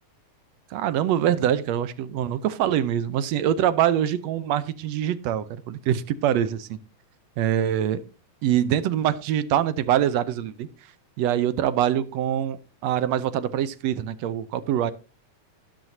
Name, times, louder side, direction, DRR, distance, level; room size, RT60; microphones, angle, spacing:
voice 1, 0.7-6.8 7.4-8.0 8.4-10.7 11.2-14.9, right 10 dB, 75° right, 1.8 m, -24 dB
12.0 x 11.0 x 2.7 m
omnidirectional pair, 3.4 m